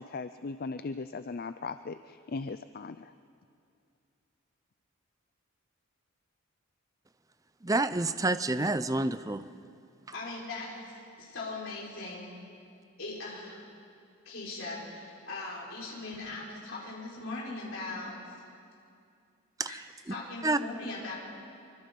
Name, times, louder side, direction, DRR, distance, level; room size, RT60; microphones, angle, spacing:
voice 1, 0.0-3.1, left 4 dB, 45° left, 11 dB, 0.4 m, -38 dB
voice 2, 7.6-9.4 19.6-19.7 20.4-20.6, right 2 dB, 15° right, 12 dB, 0.6 m, -28 dB
voice 3, 10.1-10.9 11.2-12.3 13.0-13.6 14.2-18.2 19.7-21.1, left 2 dB, 65° left, -4 dB, 5.0 m, -39 dB
26.0 x 24.0 x 5.4 m, 2.4 s
head